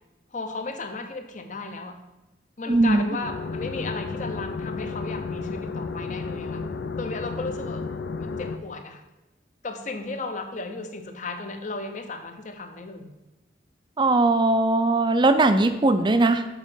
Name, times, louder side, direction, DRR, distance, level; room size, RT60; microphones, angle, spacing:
voice 1, 0.3-2.0 2.6-6.6 7.0-7.9 8.2-9.0 9.6-13.1, left 3 dB, 45° left, 6 dB, 0.8 m, -35 dB
voice 2, 2.7-3.1 14.0-16.5, right 2 dB, 25° right, 10 dB, 0.4 m, -20 dB
sound 1, 3.2-8.6, left 4 dB, 75° left, 0.4 m, -32 dB
7.3 x 4.1 x 5.6 m, 1.1 s
head